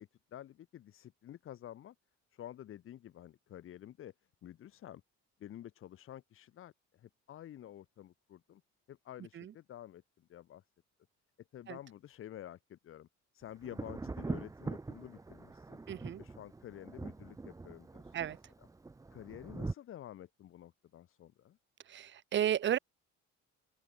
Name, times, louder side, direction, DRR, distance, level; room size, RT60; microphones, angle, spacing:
voice 1, 0.0-1.9 2.3-4.1 4.4-5.0 5.4-8.6 8.9-10.6 11.5-13.1 13.3-15.8 16.2-18.2 18.6-18.7 19.1-21.6, left 11 dB, 45° left, 1.0 m, -50 dB
Thunder, 13.6-19.7, right 3 dB, 10° right, 0.9 m, -43 dB
voice 2, 15.9-16.2 18.1-18.4 21.9-22.8, right 10 dB, 40° right, 0.9 m, -33 dB
open air
cardioid pair, 155°, 29 cm